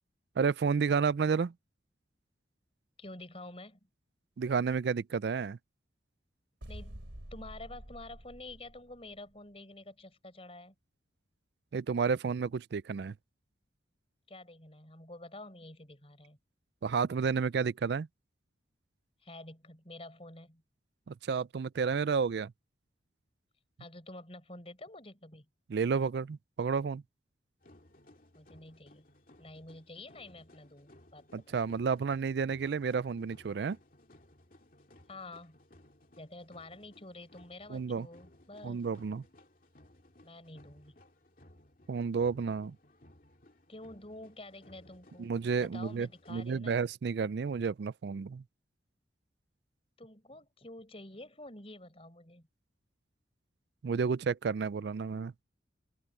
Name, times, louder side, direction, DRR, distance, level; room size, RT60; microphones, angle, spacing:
voice 1, 0.4-1.5 4.4-5.6 11.7-13.1 16.8-18.1 21.1-22.5 25.7-27.0 31.3-33.8 37.7-38.1 38.6-39.2 41.9-42.8 45.2-48.4 53.8-55.3, right 5 dB, 60° right, 0.4 m, -31 dB
voice 2, 3.0-3.8 6.7-7.0 7.3-10.7 14.3-16.4 19.2-20.6 23.8-25.4 28.3-29.1 29.4-31.6 35.1-35.6 36.2-38.9 40.2-40.9 43.7-45.3 45.6-46.8 50.0-52.5, left 2 dB, 30° left, 4.9 m, -49 dB
sound 1, 6.6-9.3, right 1 dB, 75° right, 2.9 m, -48 dB
sound 2, 27.6-46.5, left 1 dB, 45° left, 2.5 m, -60 dB
open air
head